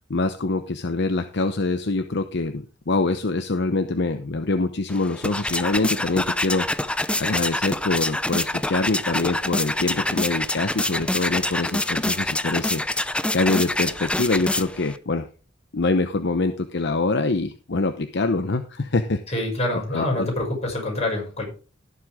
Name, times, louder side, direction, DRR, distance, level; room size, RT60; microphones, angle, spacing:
voice 1, 0.1-6.7 7.2-13.1 13.3-15.3 15.7-19.2 19.9-20.3, left 3 dB, 60° left, 8 dB, 0.8 m, -25 dB
sound 1, 4.9-15.0, left 1 dB, 5° left, 0.5 m, -26 dB
voice 2, 19.3-21.5, left 1 dB, 35° left, -1 dB, 6.5 m, -26 dB
17.5 x 7.7 x 3.6 m, 0.36 s
head